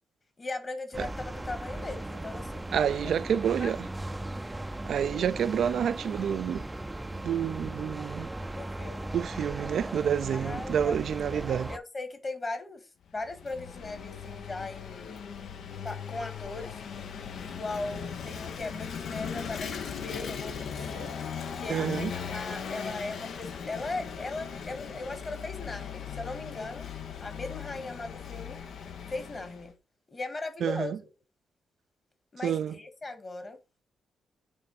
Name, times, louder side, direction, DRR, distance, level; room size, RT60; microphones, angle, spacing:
voice 1, 0.4-2.7 3.5-3.7 8.5-9.1 10.3-11.0 11.3-12.9 13.1-15.2 15.8-16.8 17.4-21.2 21.5-26.9 27.2-28.6 29.1-29.7 30.1-30.9 32.3-33.6, left 3 dB, 35° left, 1.8 m, -38 dB
sound 1, 0.9-11.8, right 1 dB, 15° right, 0.5 m, -37 dB
voice 2, 2.7-3.9 4.8-6.6 7.2-8.3 9.1-11.7 21.7-22.1 30.6-31.0 32.4-32.7, right 8 dB, 75° right, 0.4 m, -28 dB
Vehicle / Engine, 13.1-29.7, left 7 dB, 75° left, 0.9 m, -38 dB
8.8 x 3.4 x 4.2 m
cardioid pair, 80°, 0 cm